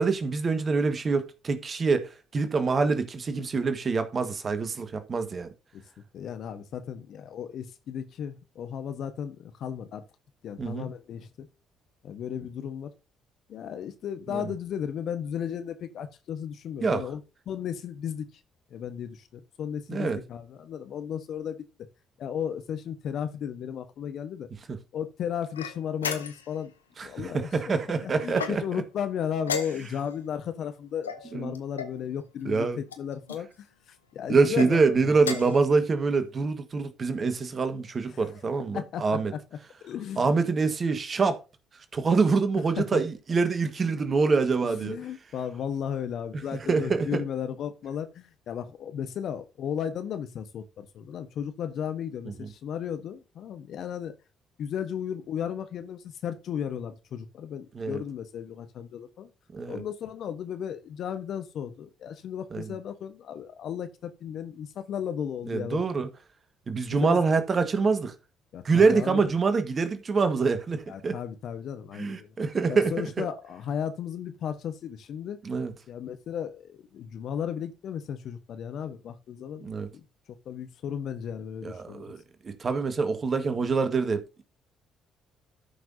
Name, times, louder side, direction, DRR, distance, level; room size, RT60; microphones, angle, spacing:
voice 1, 0.0-5.5 10.6-10.9 14.3-14.5 16.8-17.1 19.9-20.2 24.7-24.8 27.0-28.6 31.3-31.5 32.4-32.8 34.3-39.3 40.2-41.4 41.9-45.0 46.3-47.2 57.7-58.0 59.5-59.8 62.5-62.7 65.5-66.1 66.7-68.1 68.6-71.2 71.9-73.2 75.4-75.7 79.6-79.9 81.6-84.4, right 4 dB, 40° right, 1.6 m, -25 dB
voice 2, 6.1-10.0 10.4-11.5 12.0-12.9 13.5-17.2 17.5-18.3 18.7-21.6 22.2-24.5 24.9-26.7 27.0-27.5 28.0-33.7 34.1-35.6 38.1-38.3 38.7-39.4 39.8-40.4 42.8-43.0 44.6-54.1 54.6-59.3 59.7-65.8 66.9-67.2 68.5-69.3 70.9-72.3 72.7-75.4 75.9-80.0 80.4-82.1, left 8 dB, 60° left, 1.2 m, -35 dB
sound 1, 25.5-26.6 28.3-28.9 29.4-30.1 31.0-32.0 32.9-33.4 34.4-34.7 35.2-35.6, left 6 dB, 90° left, 0.7 m, -35 dB
13.5 x 6.0 x 2.7 m
hypercardioid pair, 50°, 0 cm